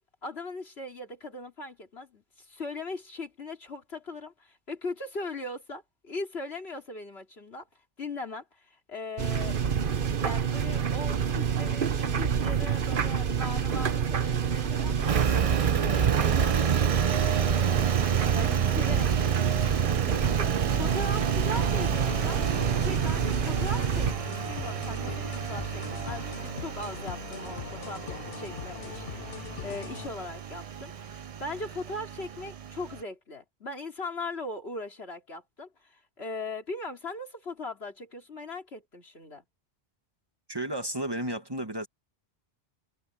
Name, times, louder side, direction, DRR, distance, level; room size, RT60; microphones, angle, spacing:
voice 1, 0.2-7.7 8.0-9.6 10.2-20.3 20.8-22.4 22.8-39.4, left 2 dB, 90° left, 3.3 m, -39 dB
sound 1, 9.2-24.1, right 7 dB, 60° right, 1.1 m, -28 dB
Engine, 15.1-33.0, right 8 dB, 45° right, 0.5 m, -30 dB
sound 2, 22.1-30.1, left 10 dB, 70° left, 0.9 m, -41 dB
voice 2, 40.5-41.9, right 1 dB, 25° right, 1.4 m, -32 dB
omnidirectional pair, 1.0 m